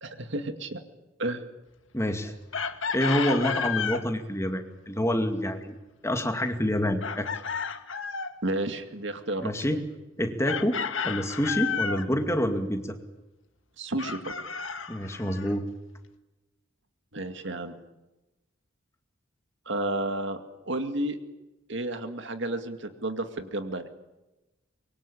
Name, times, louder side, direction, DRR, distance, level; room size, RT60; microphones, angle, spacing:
voice 1, 0.0-0.8 1.2-1.4 8.4-9.8 13.8-14.3 17.1-17.7 19.7-20.4 20.7-21.2 21.7-23.9, right 1 dB, 60° right, 7 dB, 2.3 m, -31 dB
voice 2, 1.9-2.3 2.9-5.7 6.0-7.3 9.4-9.8 10.2-10.8 11.0-13.0 14.9-15.7, equal, 15° left, 6 dB, 2.3 m, -27 dB
Chicken rooster, 2.5-4.1 7.0-8.4 10.5-12.1 14.0-15.5, left 6 dB, 75° left, 1.8 m, -31 dB
25.0 x 23.0 x 8.7 m, 1.0 s
head